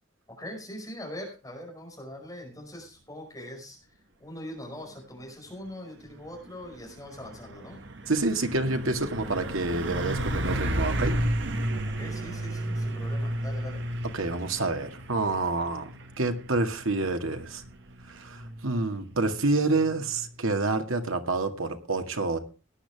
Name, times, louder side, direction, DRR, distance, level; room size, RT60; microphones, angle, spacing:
voice 1, 0.3-7.8 11.9-13.9, left 1 dB, 15° left, 1 dB, 5.1 m, -42 dB
Truck, 6.1-20.4, right 1 dB, 60° right, 1.6 m, -33 dB
voice 2, 8.1-11.2 14.1-15.9 16.2-17.6 18.1-22.4, right 2 dB, 90° right, 6 dB, 1.9 m, -28 dB
17.5 x 10.5 x 3.4 m, 0.32 s
head